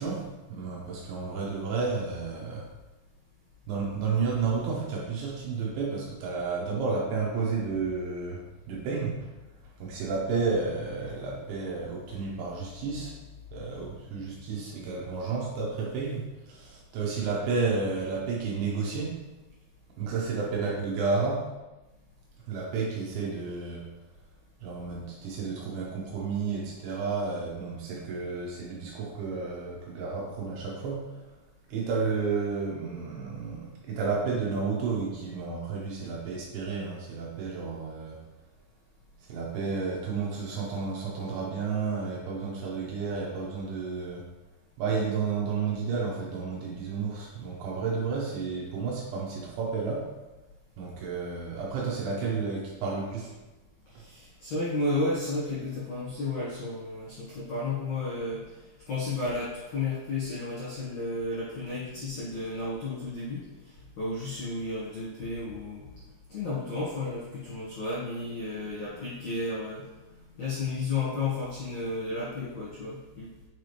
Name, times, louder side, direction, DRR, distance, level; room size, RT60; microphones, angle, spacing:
voice 1, 0.0-2.7 3.7-9.3 9.8-13.2 13.5-19.2 20.0-21.5 22.5-23.9 24.6-31.3 31.7-38.2 39.3-44.3 44.8-50.1 50.8-53.3, right 4 dB, 75° right, -3 dB, 2.8 m, -31 dB
voice 2, 53.9-58.4 58.9-65.9 66.3-69.9 70.1-73.3, left 2 dB, 70° left, -9 dB, 1.6 m, -33 dB
7.6 x 4.5 x 3.3 m, 1.1 s
omnidirectional pair, 5.9 m